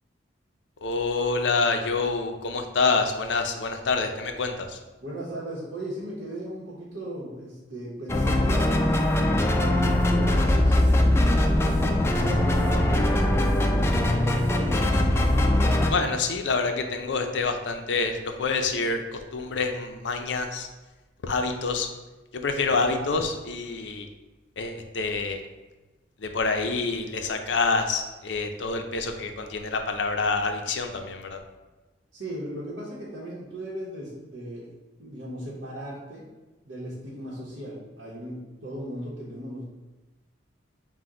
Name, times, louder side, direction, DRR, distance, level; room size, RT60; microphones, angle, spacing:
voice 1, 0.8-4.8 15.9-20.7 21.2-21.9 22.3-24.1 24.6-25.4 26.2-31.4, left 4 dB, 70° left, 5 dB, 0.5 m, -27 dB
voice 2, 5.0-11.4 12.2-14.1 32.1-34.7 35.0-36.3 36.6-39.6, right 1 dB, 80° right, -9 dB, 1.0 m, -37 dB
sound 1, 8.1-15.9, left 1 dB, 15° left, 0.3 m, -21 dB
5.9 x 2.2 x 3.7 m, 1.2 s
head